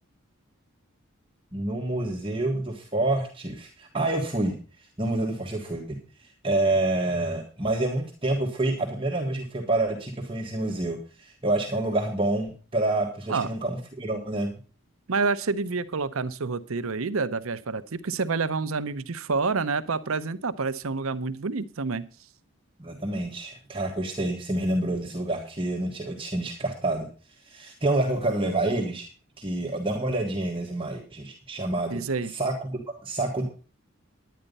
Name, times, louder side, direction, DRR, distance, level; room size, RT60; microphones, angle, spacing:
voice 1, 1.5-4.5 5.0-6.0 6.4-14.5 22.8-27.1 27.4-29.1 29.4-33.4, right 2 dB, 25° right, 0 dB, 1.5 m, -28 dB
voice 2, 15.1-22.0 31.9-32.3, right 4 dB, 85° right, 13 dB, 0.8 m, -28 dB
10.5 x 10.0 x 5.4 m, 0.38 s
head